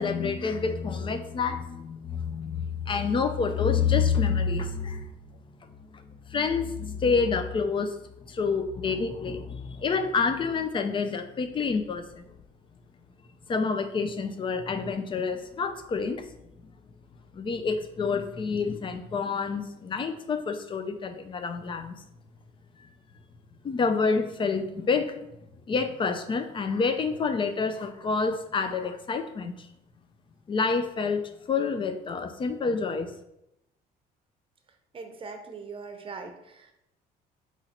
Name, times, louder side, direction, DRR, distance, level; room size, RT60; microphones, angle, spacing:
voice 1, 0.0-6.0 6.3-8.0 8.2-12.2 13.5-16.3 17.3-22.0 22.8-22.9 23.6-25.2 25.7-29.7 30.5-33.1, left 5 dB, 30° left, 8 dB, 0.5 m, -28 dB
voice 2, 34.9-36.7, right 4 dB, 30° right, 5 dB, 0.7 m, -41 dB
3.9 x 3.0 x 4.2 m, 0.84 s
cardioid pair, 110°, 17 cm